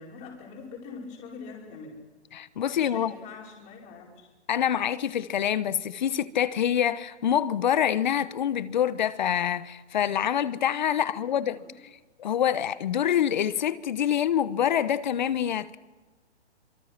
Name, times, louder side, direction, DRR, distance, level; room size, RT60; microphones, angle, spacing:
voice 1, 0.0-2.0 2.7-4.3 11.1-11.7, left 4 dB, 20° left, 5.0 m, -44 dB
voice 2, 2.3-3.1 4.5-11.6 12.2-15.8, left 10 dB, 40° left, 1.1 m, -26 dB
26.0 x 24.5 x 6.0 m
hypercardioid pair, 160°, 35 cm